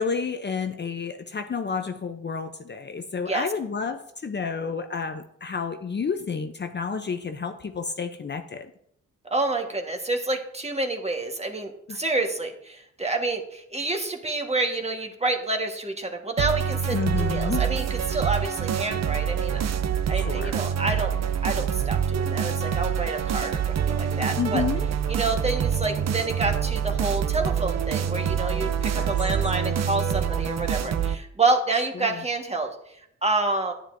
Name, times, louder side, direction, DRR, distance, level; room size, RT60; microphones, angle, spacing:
voice 1, 0.0-8.7 11.9-12.0 16.9-17.6 20.1-20.6 24.4-24.9 28.9-29.1 31.9-32.2, left 5 dB, 35° left, 6 dB, 0.6 m, -30 dB
voice 2, 9.2-19.6 20.1-21.1 21.4-24.6 25.1-32.7 33.2-33.7, right 3 dB, 20° right, 3 dB, 1.4 m, -28 dB
sound 1, 16.4-31.2, right 8 dB, 60° right, 0.6 m, -26 dB
10.0 x 9.4 x 2.6 m, 0.73 s
cardioid pair, 85°, 29 cm